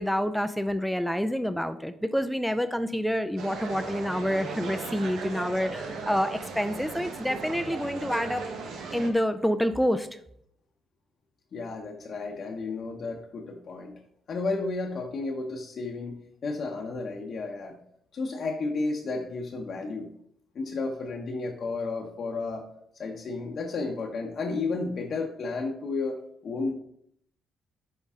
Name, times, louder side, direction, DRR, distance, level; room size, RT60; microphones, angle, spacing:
voice 1, 0.0-8.4 8.9-10.1, equal, ahead, 10 dB, 0.3 m, -28 dB
sound 1, 3.4-9.1, right 4 dB, 80° right, 0.9 m, -37 dB
voice 2, 11.5-13.9 14.3-17.8 18.1-20.1 20.5-22.6 22.9-26.7, left 3 dB, 55° left, 0 dB, 0.8 m, -32 dB
5.6 x 5.2 x 3.6 m, 0.70 s
cardioid pair, 90°, 0 cm